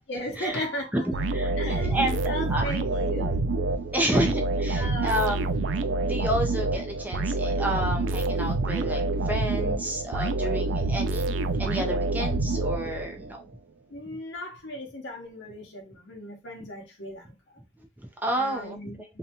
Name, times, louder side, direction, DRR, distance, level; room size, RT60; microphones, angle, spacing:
voice 1, 0.1-1.3 1.6-3.4 4.7-5.3 13.9-17.3 18.4-18.9, left 1 dB, 75° left, 0.8 m, -36 dB
sound 1, 1.1-13.3, right 2 dB, 80° right, 0.3 m, -27 dB
voice 2, 1.3-2.6 3.9-5.5 6.0-11.3 11.6-13.4 17.8-17.9 18.2-18.9, right 1 dB, 10° right, 0.5 m, -30 dB
2.6 x 2.2 x 2.8 m
head